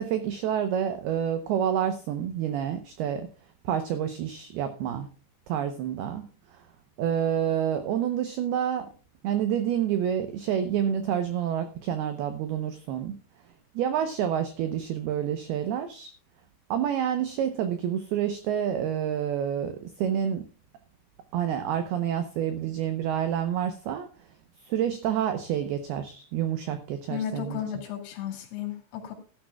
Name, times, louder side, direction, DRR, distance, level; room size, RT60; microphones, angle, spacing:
voice 1, 0.0-3.3 3.6-5.1 5.5-6.2 6.5-6.6 7.0-8.9 9.2-13.2 13.8-16.1 16.7-20.5 21.3-24.1 24.6-27.6, right 9 dB, 90° right, 8 dB, 2.2 m, -28 dB
voice 2, 27.1-29.1, left 9 dB, 80° left, 3 dB, 5.1 m, -34 dB
17.0 x 12.5 x 2.3 m, 0.38 s
omnidirectional pair, 5.7 m